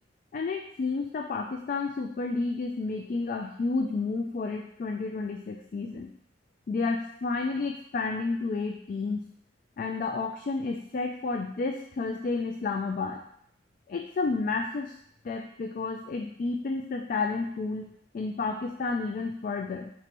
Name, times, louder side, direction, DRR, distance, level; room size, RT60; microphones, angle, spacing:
voice 1, 0.3-6.1 6.7-9.2 9.8-13.2 13.9-14.9 15.2-19.9, left 3 dB, 45° left, 3 dB, 0.3 m, -31 dB
4.6 x 3.9 x 3.0 m, 0.69 s
head